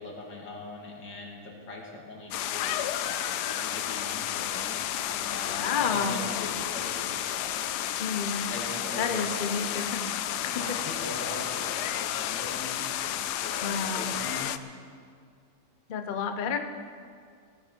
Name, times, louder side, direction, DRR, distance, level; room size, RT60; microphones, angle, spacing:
voice 1, 0.0-2.8 3.0-7.6 8.5-9.7 10.4-14.5, left 2 dB, 90° left, -1 dB, 3.0 m, -41 dB
sound 1, 2.3-14.6, left 11 dB, 75° left, 1.1 m, -32 dB
voice 2, 5.4-6.3 8.0-8.5 9.0-10.0 10.4-10.8 13.6-14.1 15.9-16.6, left 6 dB, 40° left, 7 dB, 0.7 m, -30 dB
17.5 x 15.0 x 4.6 m, 2.2 s
omnidirectional pair, 1.9 m